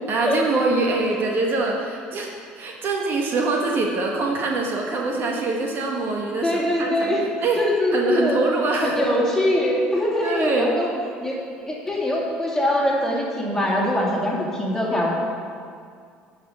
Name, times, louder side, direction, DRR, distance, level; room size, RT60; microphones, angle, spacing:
voice 1, 0.1-7.1 7.4-7.6 7.9-9.1 10.2-10.7, right 3 dB, 50° right, 0 dB, 1.3 m, -24 dB
voice 2, 6.4-7.2 7.6-8.4 8.8-10.9 11.2-15.1, left 1 dB, 10° left, -4 dB, 2.5 m, -23 dB
9.9 x 5.0 x 6.7 m, 2.2 s
supercardioid pair, 85°, 5 cm